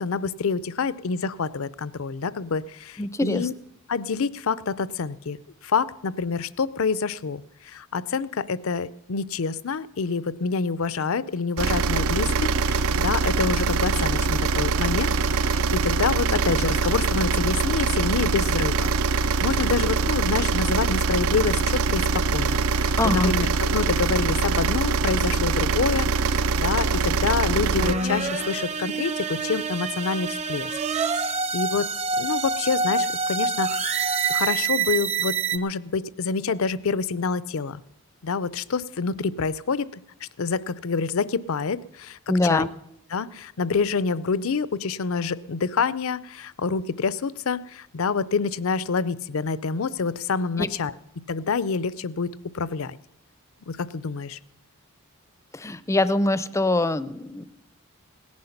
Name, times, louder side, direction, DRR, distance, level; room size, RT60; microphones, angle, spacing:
voice 1, 0.0-3.5 3.9-5.4 5.6-18.9 19.2-22.0 22.3-30.7 31.2-31.9 32.2-33.8 34.3-37.8 38.2-42.7 43.1-50.9 51.3-53.0 53.7-54.4, left 5 dB, 65° left, 18 dB, 0.5 m, -27 dB
voice 2, 3.0-3.5 23.0-23.3 42.3-42.7 50.6-50.7 55.5-57.5, left 2 dB, 15° left, 15 dB, 0.4 m, -23 dB
sound 1, 11.6-27.9, right 4 dB, 70° right, 0.5 m, -23 dB
sound 2, 27.8-35.6, right 4 dB, 30° right, 0.7 m, -26 dB
17.5 x 10.5 x 5.8 m, 0.77 s
head